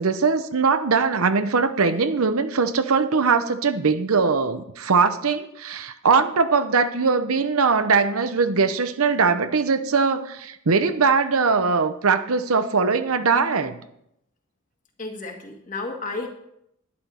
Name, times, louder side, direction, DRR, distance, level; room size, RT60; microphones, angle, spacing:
voice 1, 0.0-13.7, right 4 dB, 70° right, 11 dB, 0.8 m, -21 dB
voice 2, 15.0-16.3, left 3 dB, 35° left, 2 dB, 2.0 m, -32 dB
11.5 x 10.5 x 4.3 m, 0.77 s
head